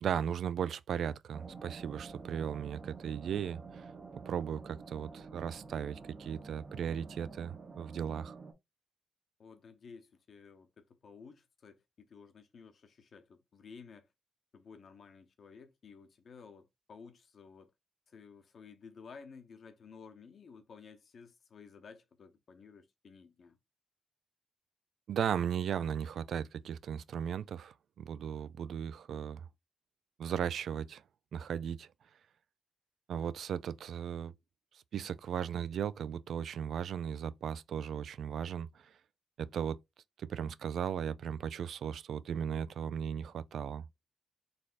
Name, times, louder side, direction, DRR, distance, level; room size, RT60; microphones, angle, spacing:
voice 1, 0.0-3.9 4.3-8.4 25.1-29.4 30.2-31.0 31.3-31.9 33.1-34.3 34.9-38.7 39.4-39.8 40.2-43.8, right 8 dB, 85° right, 0.3 m, -36 dB
sound 1, 1.3-8.5, right 4 dB, 40° right, 0.9 m, -49 dB
voice 2, 9.4-14.1 14.5-17.7 18.1-23.6, left 5 dB, 65° left, 0.8 m, -54 dB
4.0 x 3.3 x 2.5 m
cardioid pair, 100°, 0 cm